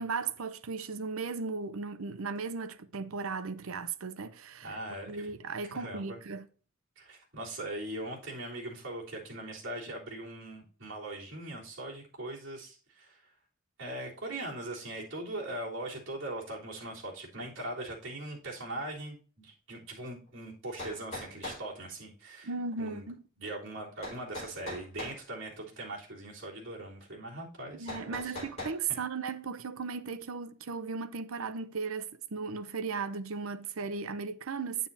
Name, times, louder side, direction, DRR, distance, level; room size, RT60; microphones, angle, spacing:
voice 1, 0.0-4.7 5.1-6.4 22.4-23.2 27.7-34.9, right 4 dB, 80° right, 0.7 m, -36 dB
voice 2, 4.6-5.3 5.7-6.2 7.0-13.2 13.8-22.5 22.8-23.1 23.4-28.4 28.9-29.0, right 1 dB, 60° right, 3.4 m, -40 dB
sound 1, 20.3-20.4 20.8-21.6 24.0-25.2 27.9-28.8, left 1 dB, 30° left, 5.1 m, -40 dB
9.3 x 8.7 x 2.7 m
head